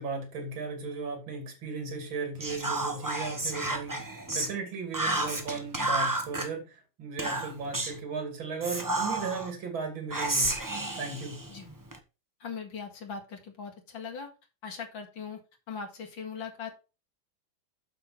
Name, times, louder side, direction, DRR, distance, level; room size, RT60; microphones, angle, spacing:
voice 1, 0.0-10.6 10.9-11.5, right 4 dB, 85° right, 3.4 m, -36 dB
Whispering, 2.4-4.5 4.9-6.5 7.2-8.0 8.6-9.5 10.1-12.0, right 2 dB, 15° right, 0.8 m, -31 dB
voice 2, 12.4-14.3 14.6-15.4 15.7-16.7, left 6 dB, 70° left, 2.6 m, -40 dB
7.0 x 6.6 x 4.4 m
omnidirectional pair, 2.1 m